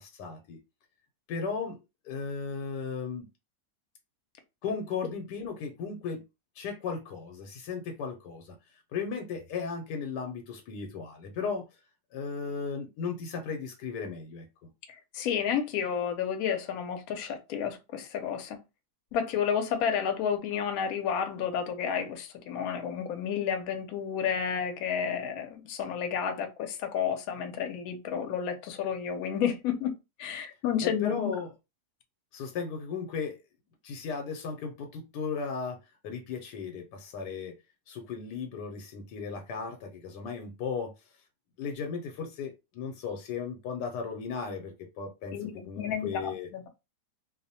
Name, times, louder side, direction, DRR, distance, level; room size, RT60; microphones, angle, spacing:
voice 1, 0.0-0.6 1.3-1.8 2.0-3.3 4.6-6.2 6.6-8.6 8.9-11.7 12.1-14.5 30.8-31.5 32.3-33.4 33.8-35.8 36.0-37.5 37.9-40.9 41.6-46.5, left 5 dB, 90° left, 1.2 m, -36 dB
voice 2, 15.1-18.6 19.1-31.3 45.3-46.7, left 8 dB, 70° left, 1.0 m, -31 dB
2.7 x 2.0 x 2.7 m
omnidirectional pair, 1.7 m